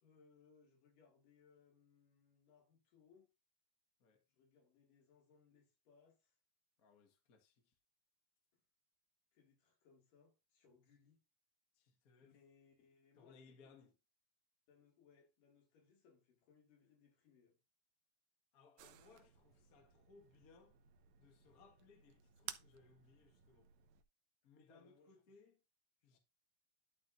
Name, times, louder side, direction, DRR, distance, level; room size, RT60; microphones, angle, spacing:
voice 1, 0.0-3.3 4.3-6.3 8.5-8.6 9.3-11.2 12.2-13.8 14.7-17.6 24.7-25.2 26.1-26.2, left 5 dB, 70° left, 3.8 m, -70 dB
voice 2, 6.8-7.7 11.7-12.4 13.1-13.9 18.5-20.8 21.2-23.7 24.4-25.6 26.0-26.2, left 4 dB, 45° left, 1.1 m, -66 dB
sound 1, 18.8-24.0, right 12 dB, 80° right, 2.2 m, -56 dB
12.0 x 4.9 x 2.6 m
omnidirectional pair, 4.0 m